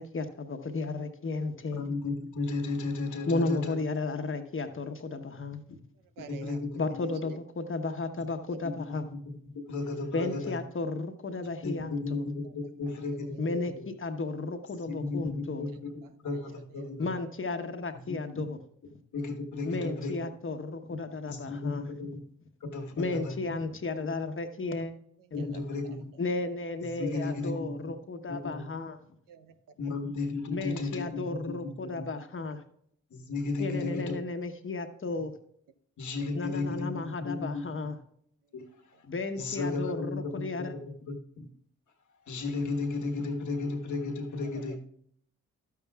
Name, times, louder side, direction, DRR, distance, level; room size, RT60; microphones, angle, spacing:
voice 1, 0.0-1.8 3.3-5.8 6.8-9.1 10.1-12.2 13.4-15.6 17.0-18.6 19.6-21.8 22.9-24.9 25.3-25.5 26.2-29.0 30.5-32.6 33.6-35.3 36.3-38.0 39.1-40.7, left 3 dB, 40° left, 7 dB, 1.1 m, -34 dB
voice 2, 1.7-3.8 6.3-7.0 8.2-8.3 8.6-10.6 11.6-13.8 14.8-15.9 16.2-17.1 18.1-18.2 19.1-20.1 21.3-22.2 22.6-23.4 25.3-26.1 26.8-27.8 28.3-28.6 29.8-32.1 33.1-34.2 36.0-37.7 38.5-38.6 39.3-40.7 41.0-41.5 42.3-44.8, left 3 dB, 60° left, 4 dB, 1.4 m, -34 dB
voice 3, 5.9-6.6 6.9-7.4 8.4-8.6 10.4-10.5 12.4-13.7 15.7-17.2 25.2-26.2 26.9-27.5 29.3-30.0 33.6-34.2 36.2-36.4 38.4-39.0 44.4-44.8, right 7 dB, 80° right, 11 dB, 0.7 m, -52 dB
12.0 x 9.4 x 2.4 m, 0.67 s
supercardioid pair, 50°, 33 cm